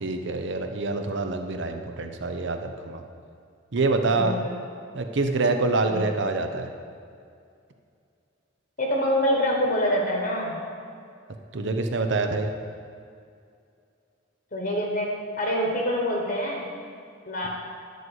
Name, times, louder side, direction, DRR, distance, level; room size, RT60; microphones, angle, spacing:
voice 1, 0.0-3.0 3.7-4.5 4.9-6.7 11.5-12.5, right 3 dB, 65° right, 6 dB, 0.7 m, -26 dB
voice 2, 4.0-4.6 5.9-6.1 8.8-10.6 14.5-16.7 17.3-17.5, equal, 45° left, 0 dB, 1.2 m, -26 dB
10.0 x 4.7 x 7.9 m, 2.3 s
head